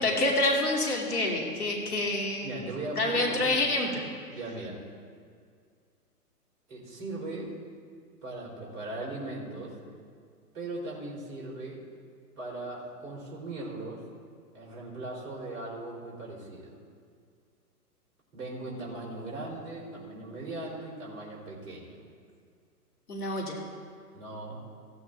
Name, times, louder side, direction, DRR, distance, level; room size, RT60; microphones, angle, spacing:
voice 1, 0.0-2.6 3.0-4.1 23.1-23.6, left 2 dB, 70° left, 0 dB, 2.6 m, -27 dB
voice 2, 2.4-3.6 4.3-4.8 6.7-7.5 8.2-9.7 10.5-11.8 12.4-14.0 14.5-16.7 18.3-22.0 24.1-24.6, right 2 dB, 55° right, -4 dB, 3.8 m, -38 dB
15.5 x 14.5 x 3.4 m, 2.1 s
figure-of-eight pair, 120°, 47 cm